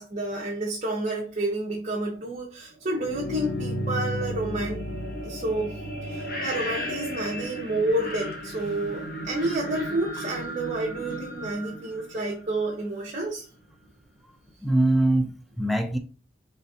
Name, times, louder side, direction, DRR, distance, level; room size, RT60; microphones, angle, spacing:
voice 1, 0.0-4.8 5.2-5.8 6.1-13.4, right 1 dB, 35° right, 0.7 m, -29 dB
sound 1, 2.9-12.8, equal, 50° left, 0.9 m, -34 dB
voice 2, 14.6-16.0, right 1 dB, ahead, 0.3 m, -23 dB
4.0 x 3.2 x 2.7 m
head